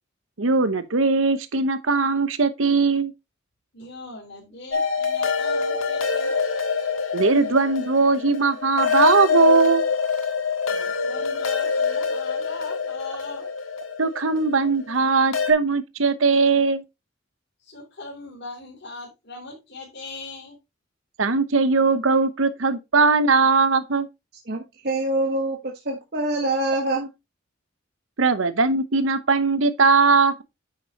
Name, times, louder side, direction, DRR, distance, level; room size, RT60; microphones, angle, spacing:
voice 1, 0.4-3.1 7.1-9.8 14.0-16.8 21.2-24.1 28.2-30.4, right 4 dB, 80° right, 0.9 m, -20 dB
voice 2, 3.7-6.3 10.7-13.5 17.6-20.6, left 3 dB, 60° left, 3.2 m, -40 dB
sound 1, 4.7-15.5, left 5 dB, 90° left, 1.7 m, -25 dB
voice 3, 24.5-27.1, right 2 dB, 55° right, 1.5 m, -25 dB
9.3 x 6.8 x 2.9 m
head